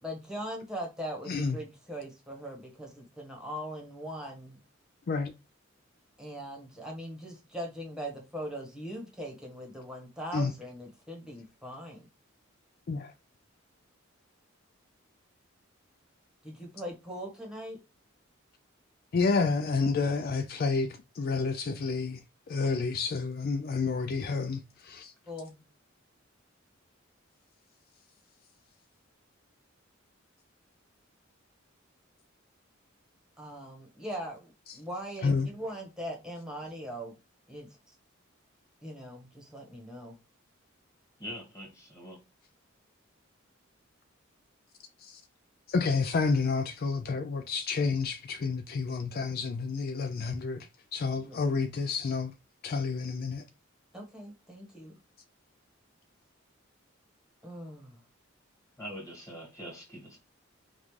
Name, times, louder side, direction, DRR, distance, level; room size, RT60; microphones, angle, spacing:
voice 1, 0.0-4.6 6.2-12.0 16.4-17.8 25.3-25.7 33.4-37.1 37.5-37.7 38.8-40.1 51.2-51.4 53.9-54.9 57.4-58.0, equal, 5° right, 1.3 m, -40 dB
voice 2, 1.3-1.6 5.1-5.3 10.3-10.5 12.9-13.1 19.1-22.2 22.5-25.1 34.7-34.8 35.2-35.5 45.0-45.2 45.7-52.3 52.6-53.4, left 4 dB, 50° left, 0.4 m, -30 dB
voice 3, 41.2-42.2 58.8-60.2, equal, 15° left, 2.0 m, -43 dB
5.3 x 2.5 x 3.2 m
head